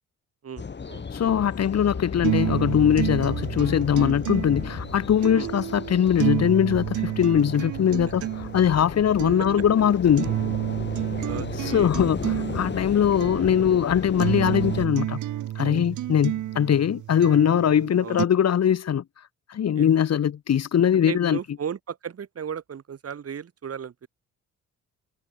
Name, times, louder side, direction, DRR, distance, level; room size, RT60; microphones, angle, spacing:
voice 1, 0.4-1.0 5.3-5.5 11.2-11.9 18.0-18.3 19.7-19.9 20.9-24.1, right 7 dB, 50° right, 7.6 m, -36 dB
sound 1, 0.6-14.9, left 5 dB, 35° left, 5.4 m, -35 dB
voice 2, 1.1-8.2 8.5-10.3 11.6-15.2 15.5-19.0 19.5-21.4, left 9 dB, 55° left, 3.5 m, -21 dB
sound 2, 2.2-18.2, right 13 dB, 75° right, 3.1 m, -30 dB
cardioid pair, 90°, 30 cm